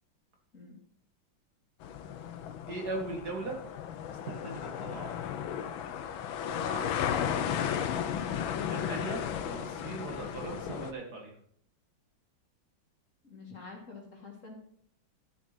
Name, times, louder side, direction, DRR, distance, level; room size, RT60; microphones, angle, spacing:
sound 1, 1.8-10.9, left 9 dB, 85° left, 1.6 m, -34 dB
voice 1, 2.7-3.6 4.2-5.2 7.2-7.5 8.7-11.3, right 2 dB, 55° right, 0 dB, 2.3 m, -39 dB
voice 2, 6.4-6.9 13.2-14.5, left 3 dB, 40° left, -1 dB, 2.7 m, -44 dB
13.0 x 7.4 x 4.4 m, 0.66 s
omnidirectional pair, 2.1 m